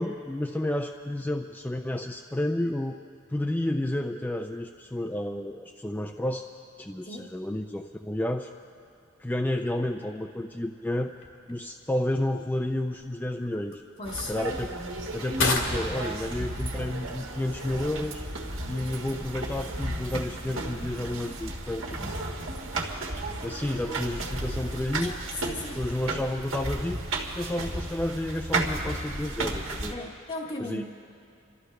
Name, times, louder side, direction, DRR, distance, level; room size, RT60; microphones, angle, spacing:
voice 1, 0.0-3.0 3.3-6.4 6.8-8.5 9.2-11.1 11.5-13.8 14.3-14.7 15.1-18.2 18.7-22.2 23.4-25.2 25.5-27.0 27.4-29.9 30.6-30.9, left 1 dB, 10° left, 3 dB, 0.4 m, -31 dB
sound 1, 11.1-20.2, left 3 dB, 75° left, 2.0 m, -37 dB
voice 2, 14.0-14.3 25.0-25.8 29.9-30.9, left 2 dB, 35° left, -3 dB, 1.0 m, -36 dB
sound 2, 14.0-29.9, right 2 dB, 75° right, 1.7 m, -34 dB
28.5 x 13.0 x 3.3 m, 2.6 s
head